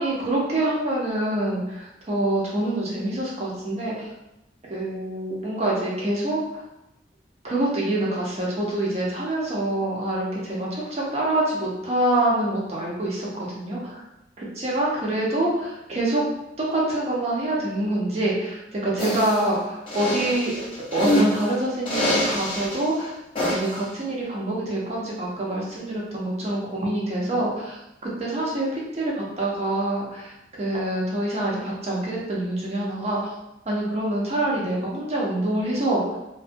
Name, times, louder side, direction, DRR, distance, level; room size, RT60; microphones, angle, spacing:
voice 1, 0.0-4.1 4.7-6.6 7.4-14.0 14.4-16.2 16.6-20.5 20.9-23.1 23.5-33.3 33.7-36.2, right 1 dB, 40° right, -4 dB, 0.6 m, -26 dB
sound 1, 19.0-19.4 19.9-21.4 21.8-22.8 23.3-23.8, equal, 30° left, 0.7 m, -24 dB
2.3 x 2.3 x 2.6 m, 0.90 s
head